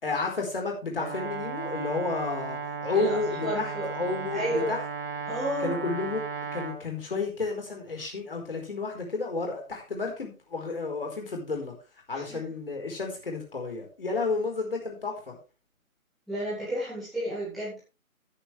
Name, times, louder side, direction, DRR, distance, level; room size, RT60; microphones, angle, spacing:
voice 1, 0.0-4.8 5.6-6.2 6.5-11.7 12.1-15.4, left 4 dB, 40° left, 2 dB, 4.6 m, -31 dB
Brass instrument, 1.0-6.8, right 5 dB, 40° right, 1.8 m, -35 dB
voice 2, 2.8-3.9 4.3-4.7 5.3-5.8 12.1-12.4 16.3-17.8, right 1 dB, ahead, -12 dB, 2.5 m, -31 dB
13.5 x 10.0 x 3.4 m, 0.30 s
figure-of-eight pair, 165°, 43 cm